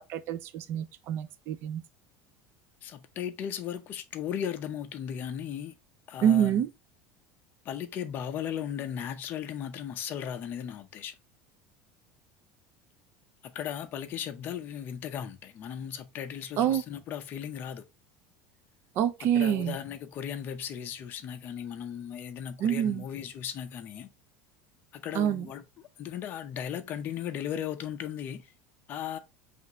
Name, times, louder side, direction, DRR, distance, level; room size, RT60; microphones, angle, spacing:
voice 1, 0.0-1.8 6.2-6.7 16.6-16.8 19.0-19.8 22.6-23.0 25.1-25.5, right 9 dB, 40° right, 0.4 m, -26 dB
voice 2, 2.8-5.7 6.1-6.6 7.6-11.1 13.5-17.8 19.3-24.1 24.9-25.6 26.0-28.5 28.9-29.2, left 9 dB, 30° left, 0.6 m, -36 dB
5.6 x 2.5 x 2.9 m
cardioid pair, 170°, 6 cm